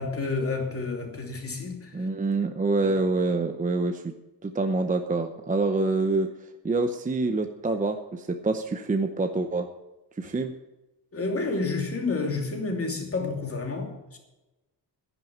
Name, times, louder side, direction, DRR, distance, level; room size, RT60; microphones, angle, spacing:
voice 1, 0.0-2.1 11.1-14.2, left 3 dB, 30° left, 3 dB, 2.7 m, -30 dB
voice 2, 1.9-4.1 4.4-6.3 6.6-9.7 10.2-10.5, right 3 dB, 20° right, 6 dB, 0.7 m, -26 dB
11.0 x 10.5 x 7.3 m, 1.0 s
wide cardioid pair, 160°, 44 cm